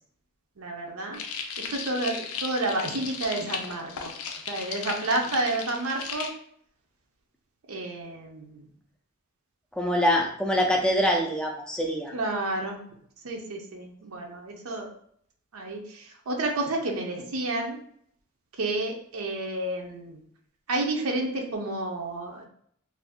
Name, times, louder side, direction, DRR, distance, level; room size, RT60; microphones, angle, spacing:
voice 1, 0.6-1.2 1.7-4.1 4.5-6.3 7.7-8.7 12.1-12.8 13.2-14.9 15.5-17.8 18.6-20.2 20.7-22.5, right 2 dB, 85° right, 1 dB, 0.6 m, -30 dB
sound 1, 1.1-6.3, left 6 dB, 90° left, 0.4 m, -36 dB
voice 2, 9.8-12.1, equal, 5° left, 0 dB, 0.3 m, -24 dB
2.6 x 2.4 x 3.4 m, 0.64 s
head